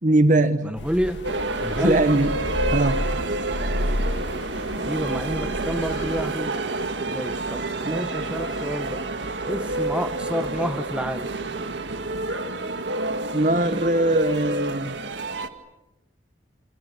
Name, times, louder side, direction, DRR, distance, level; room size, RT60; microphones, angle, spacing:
voice 1, 0.0-0.7 1.8-2.4 2.7-3.0 7.8-8.1 13.3-14.9, right 2 dB, 45° right, 1.4 m, -21 dB
voice 2, 0.6-1.2 1.6-2.0 4.7-6.6 7.1-9.0 9.5-11.3, equal, 5° right, 1.1 m, -29 dB
sound 1, 0.8-6.3, left 1 dB, 80° left, 1.7 m, -31 dB
sound 2, 1.0-10.6, left 2 dB, 45° left, 7.9 m, -50 dB
sound 3, 1.2-15.5, right 2 dB, 75° right, 1.8 m, -29 dB
29.5 x 27.5 x 6.8 m
head